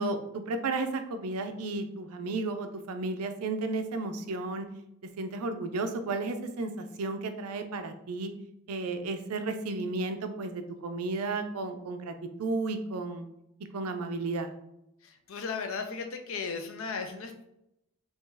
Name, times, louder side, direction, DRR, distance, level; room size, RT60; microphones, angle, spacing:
voice 1, 0.0-4.7 5.2-8.3 8.7-13.3 13.7-14.5, right 3 dB, 80° right, 8 dB, 0.4 m, -33 dB
voice 2, 15.0-17.5, left 5 dB, 60° left, 5 dB, 0.5 m, -36 dB
2.9 x 2.7 x 3.7 m, 0.81 s
head